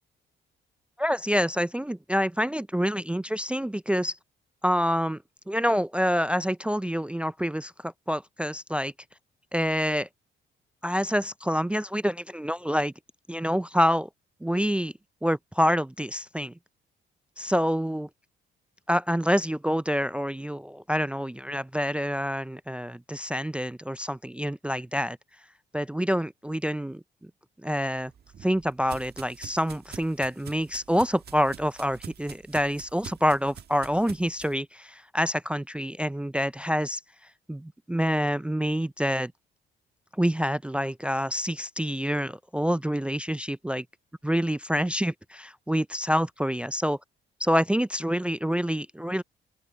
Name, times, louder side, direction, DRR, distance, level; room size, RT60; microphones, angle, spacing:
voice 1, 1.0-4.2 4.6-5.2 5.5-8.9 9.5-10.1 10.8-12.9 13.3-14.1 14.4-14.9 15.2-16.5 17.4-18.1 18.9-25.2 25.7-27.0 27.6-28.1 28.4-37.0 37.5-39.3 40.2-43.8 44.2-47.0 47.4-49.2, equal, 5° right, 0.4 m, -27 dB
sound 1, 28.0-34.5, right 8 dB, 55° right, 1.6 m, -46 dB
open air
cardioid pair, 90°, 20 cm